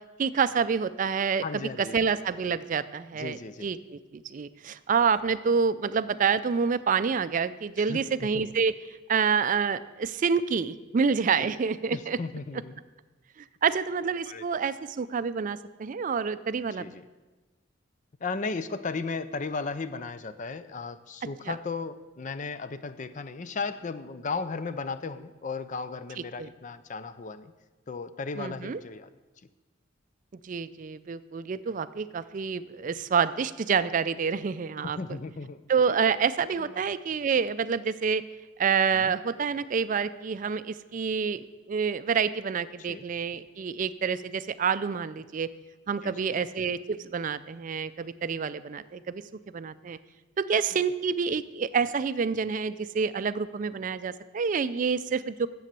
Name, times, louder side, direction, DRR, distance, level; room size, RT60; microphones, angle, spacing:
voice 1, 0.2-8.7 9.1-12.2 13.4-16.9 21.5-21.6 26.4-26.5 28.4-28.8 30.4-35.0 35.7-38.2 38.6-45.5 45.9-49.2 49.5-50.0 50.4-55.5, right 6 dB, 40° right, 14 dB, 0.4 m, -28 dB
voice 2, 1.4-2.0 3.1-3.7 7.9-8.4 11.4-11.5 11.9-12.7 14.3-14.4 16.8-17.0 18.2-27.5 27.9-29.1 34.8-35.6 36.6-36.7 38.9-39.1 42.9-43.0 46.0-46.3, left 4 dB, 40° left, 13 dB, 0.5 m, -35 dB
10.5 x 7.7 x 6.7 m, 1.2 s
head